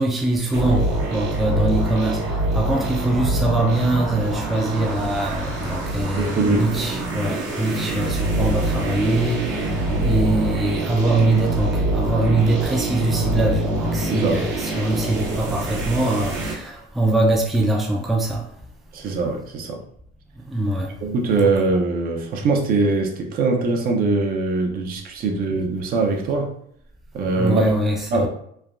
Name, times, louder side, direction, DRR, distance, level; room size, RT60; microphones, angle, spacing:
voice 1, 0.0-18.5 20.4-20.9 21.4-21.5 27.3-28.3, right 2 dB, ahead, 0.4 m, -23 dB
sound 1, 0.5-16.5, right 2 dB, 70° right, 1.0 m, -25 dB
voice 2, 6.2-6.7 8.3-8.5 14.1-14.4 18.9-19.8 21.0-26.6 27.1-27.7 28.1-28.3, right 3 dB, 50° right, 0.6 m, -22 dB
3.2 x 2.2 x 2.4 m
cardioid pair, 115°, 20 cm